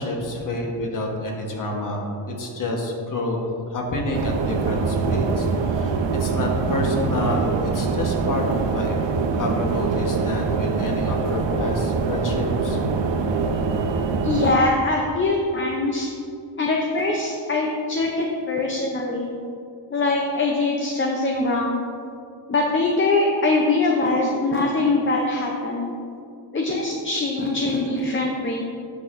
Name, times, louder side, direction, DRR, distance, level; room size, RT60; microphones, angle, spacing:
voice 1, 0.0-9.0 9.3-12.8, left 1 dB, 45° left, 0 dB, 1.1 m, -28 dB
sound 1, 4.1-14.5, right 4 dB, 70° right, 0.6 m, -24 dB
voice 2, 14.2-16.1 16.6-19.3 19.9-21.8 22.5-25.9 26.5-28.6, left 2 dB, 25° left, 0 dB, 0.5 m, -22 dB
8.9 x 6.3 x 2.5 m, 2.6 s
wide cardioid pair, 130°, 46 cm